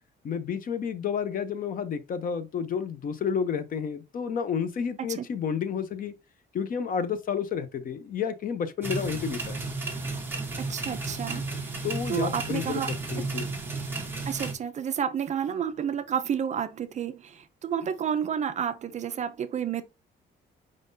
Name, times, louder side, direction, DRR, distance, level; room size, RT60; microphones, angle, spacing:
voice 1, 0.2-6.1 6.5-9.6 11.8-12.8 13.1-13.5, left 7 dB, 45° left, 0.6 m, -30 dB
sound 1, 8.8-14.5, right 3 dB, 10° right, 1.0 m, -33 dB
voice 2, 10.6-11.7 12.1-12.9 14.3-19.8, right 8 dB, 40° right, 0.4 m, -30 dB
5.0 x 3.7 x 2.6 m
cardioid pair, 175°, 19 cm